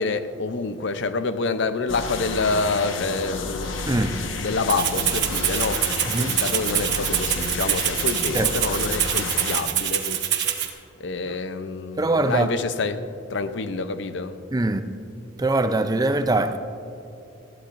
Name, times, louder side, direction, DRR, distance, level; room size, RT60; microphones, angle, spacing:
voice 1, 0.0-3.8 4.4-10.3 11.0-13.0 13.3-14.3, left 3 dB, 65° left, 0.6 m, -27 dB
sound 1, 1.9-9.6, left 3 dB, 85° left, 1.1 m, -31 dB
voice 2, 3.9-4.2 6.1-6.3 8.3-8.5 12.0-12.5 14.5-14.8 15.4-16.6, right 2 dB, 20° right, 0.5 m, -22 dB
Rattle (instrument), 4.7-10.7, right 10 dB, 60° right, 1.1 m, -25 dB
20.0 x 14.5 x 2.6 m
head